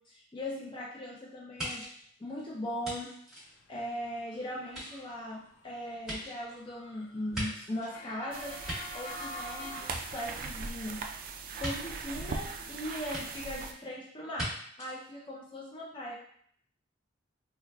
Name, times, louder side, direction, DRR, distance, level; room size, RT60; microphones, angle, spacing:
voice 1, 0.1-1.9 2.2-8.6 8.9-11.0 11.6-14.5 14.8-16.1, left 1 dB, 25° left, -4 dB, 0.5 m, -39 dB
sound 1, 1.6-4.2 4.6-8.0 8.4-9.5 9.8-10.7 11.6-11.7 13.1-13.2 14.3-14.5 14.8-14.9, equal, 5° right, 1.5 m, -40 dB
Motor vehicle (road) / Siren, 4.0-11.3, left 2 dB, 90° left, 0.4 m, -48 dB
sound 2, 8.3-13.7, right 4 dB, 50° right, 0.3 m, -40 dB
4.6 x 2.2 x 2.2 m, 0.63 s
head